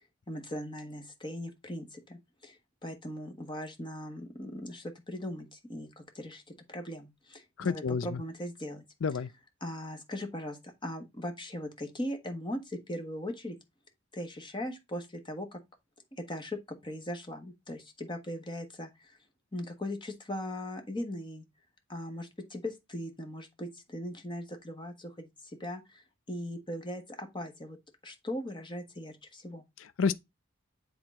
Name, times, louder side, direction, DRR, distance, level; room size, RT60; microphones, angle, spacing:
voice 1, 0.0-6.4 6.7-8.8 9.6-13.6 14.1-15.6 16.1-19.2 19.5-21.4 21.9-27.8 28.0-29.6, left 1 dB, 25° left, 1.4 m, -39 dB
voice 2, 7.6-8.2 9.0-9.3 29.8-30.1, left 5 dB, 70° left, 0.5 m, -30 dB
7.9 x 3.9 x 4.2 m
head